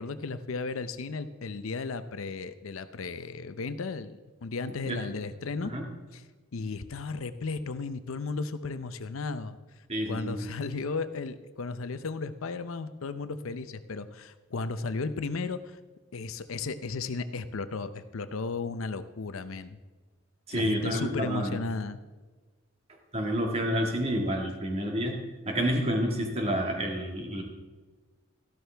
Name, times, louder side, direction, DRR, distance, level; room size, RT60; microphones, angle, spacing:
voice 1, 0.0-5.7 6.1-6.2 6.5-9.5 10.1-15.8 16.1-19.8 20.5-22.0, left 4 dB, 80° left, 12 dB, 0.6 m, -35 dB
voice 2, 9.9-10.4 20.5-21.6 23.1-27.4, equal, 30° right, 1 dB, 1.9 m, -29 dB
13.5 x 12.5 x 3.4 m, 1.3 s
head